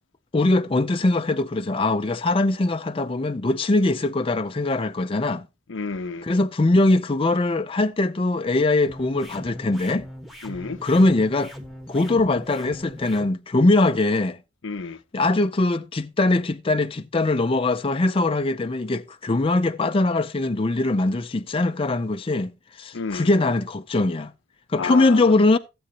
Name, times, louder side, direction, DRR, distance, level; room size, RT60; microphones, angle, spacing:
voice 1, 0.3-5.5 6.2-10.1 10.8-11.5 11.9-14.4 15.1-24.3 24.7-25.6, left 2 dB, 30° left, 0.5 m, -21 dB
voice 2, 5.7-6.3 10.4-10.8 14.6-15.0 22.9-23.3 24.8-25.3, left 4 dB, 70° left, 0.7 m, -31 dB
sound 1, 8.9-13.3, equal, ahead, 1.3 m, -40 dB
15.5 x 7.8 x 2.8 m
head